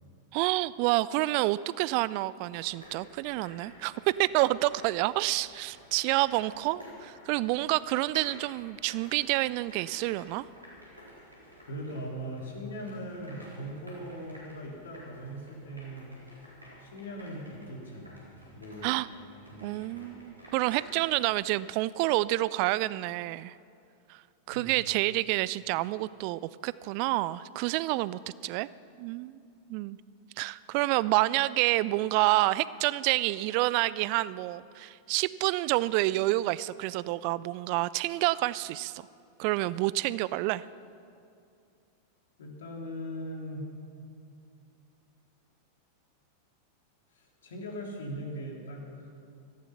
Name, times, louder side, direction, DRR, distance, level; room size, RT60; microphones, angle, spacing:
voice 1, 0.3-10.5 18.8-19.1 19.6-23.6 24.1-24.2 24.5-28.7 29.0-29.4 29.7-30.0 30.4-39.1 39.4-40.6, right 18 dB, 45° right, 19 dB, 0.3 m, -28 dB
sound 1, 2.5-21.3, equal, 85° right, 4.3 m, -52 dB
voice 2, 11.7-16.1 16.8-18.2 18.5-19.0 19.5-19.8 24.5-24.7 42.4-43.7 47.1-49.1, equal, 65° left, 0 dB, 3.2 m, -40 dB
17.5 x 14.0 x 5.8 m, 2.5 s
figure-of-eight pair, 90°, 0 cm